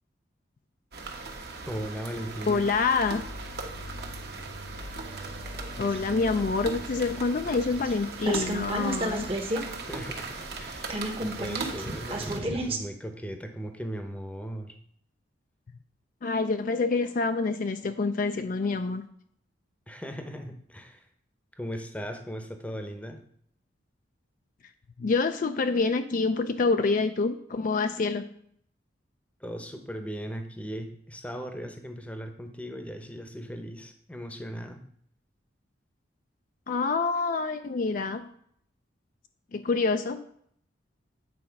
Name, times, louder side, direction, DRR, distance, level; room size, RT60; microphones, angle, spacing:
sound 1, 0.9-12.4, right 3 dB, 55° right, 1.2 m, -39 dB
voice 1, 1.7-2.6 9.9-14.8 19.9-21.0 21.6-23.2 29.4-34.9, equal, 5° left, 6 dB, 0.8 m, -38 dB
voice 2, 2.5-3.2 5.8-9.3 16.2-19.0 25.0-28.3 36.7-38.3 39.5-40.2, left 4 dB, 45° left, 8 dB, 0.4 m, -27 dB
sound 2, 2.6-10.3, equal, 70° left, 1.1 m, -44 dB
sound 3, 5.1-7.9 8.2-9.7 9.9-10.0 10.3-12.8, right 1 dB, 30° right, 1.0 m, -33 dB
8.6 x 4.3 x 5.8 m, 0.66 s
head